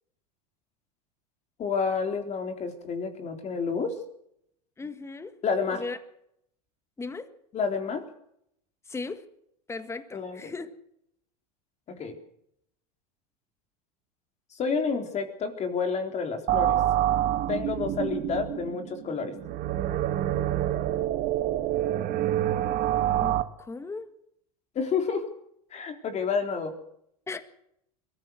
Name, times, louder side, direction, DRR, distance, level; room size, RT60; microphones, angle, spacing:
voice 1, 1.6-4.0 5.4-5.8 7.5-8.1 10.1-10.5 11.9-12.2 14.5-16.8 17.5-19.4 24.8-25.3 25.7-26.7, left 5 dB, 35° left, 3.8 m, -29 dB
voice 2, 4.8-5.4 5.7-6.0 7.0-7.3 8.9-9.2 9.7-10.7 23.2-24.1 27.3-27.4, left 3 dB, 15° left, 1.7 m, -37 dB
sound 1, 16.5-23.4, right 12 dB, 45° right, 1.5 m, -27 dB
22.5 x 14.5 x 8.1 m
hypercardioid pair, 105°, 20 cm